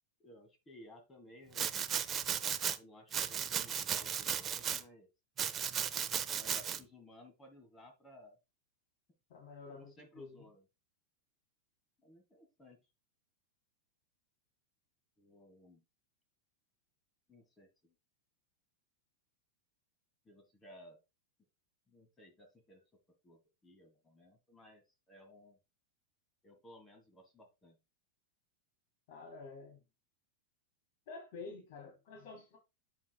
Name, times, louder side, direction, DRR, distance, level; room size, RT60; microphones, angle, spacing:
voice 1, 0.2-1.8 2.8-5.1 6.3-8.4 9.7-10.7 12.0-12.8 15.2-15.8 17.3-17.9 20.3-21.0 21.9-25.6 26.4-27.8, left 1 dB, 15° left, 1.7 m, -58 dB
Domestic sounds home sounds, 1.5-2.8 3.1-4.8 5.4-6.8, right 8 dB, 25° right, 0.6 m, -35 dB
voice 2, 9.3-10.5 29.1-29.8 31.1-32.6, left 4 dB, 60° left, 3.2 m, -49 dB
8.4 x 7.5 x 2.3 m
supercardioid pair, 140°, 0 cm